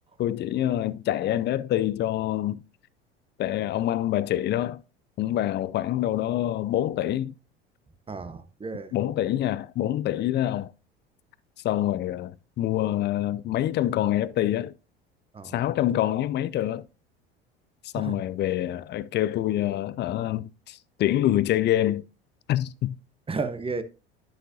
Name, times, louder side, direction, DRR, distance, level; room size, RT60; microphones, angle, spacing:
voice 1, 0.2-2.6 3.4-4.8 5.2-7.3 8.9-10.7 11.6-14.7 15.5-16.8 17.9-22.0 22.5-23.0, left 13 dB, 35° left, 0.4 m, -26 dB
voice 2, 8.1-8.9 15.3-15.6 17.9-18.2 23.3-23.8, right 4 dB, 20° right, 0.8 m, -32 dB
11.0 x 6.4 x 2.7 m
hypercardioid pair, 70°, 31 cm